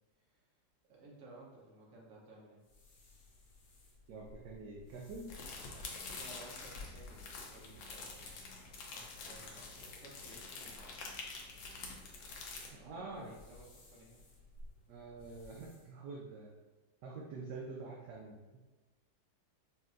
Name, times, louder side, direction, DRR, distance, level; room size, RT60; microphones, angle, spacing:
voice 1, 0.9-2.6 6.1-8.3 8.9-11.1 12.7-14.2, right 2 dB, 50° right, -4 dB, 1.2 m, -57 dB
sound 1, 2.6-15.9, left 2 dB, 70° left, 1.6 m, -58 dB
voice 2, 4.1-5.3 12.8-13.3 14.9-16.5 17.0-18.4, right 3 dB, 70° right, -2 dB, 1.1 m, -46 dB
sound 2, 5.3-12.7, left 4 dB, 90° left, 1.5 m, -47 dB
5.5 x 2.6 x 2.5 m, 1.2 s
omnidirectional pair, 2.1 m